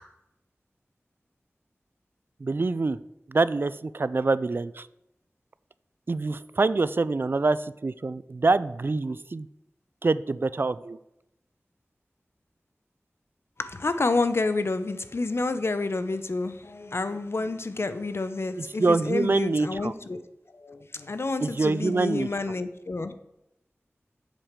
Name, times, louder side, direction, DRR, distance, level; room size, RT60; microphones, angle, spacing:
voice 1, 2.4-3.0 3.3-4.9 6.1-9.5 10.0-11.0 18.6-19.9 21.4-22.3, right 3 dB, 50° right, 16 dB, 0.3 m, -25 dB
voice 2, 13.6-20.2 20.5-23.1, left 3 dB, 60° left, 11 dB, 0.7 m, -29 dB
7.5 x 4.9 x 7.3 m, 0.87 s
wide cardioid pair, 55°, 5 cm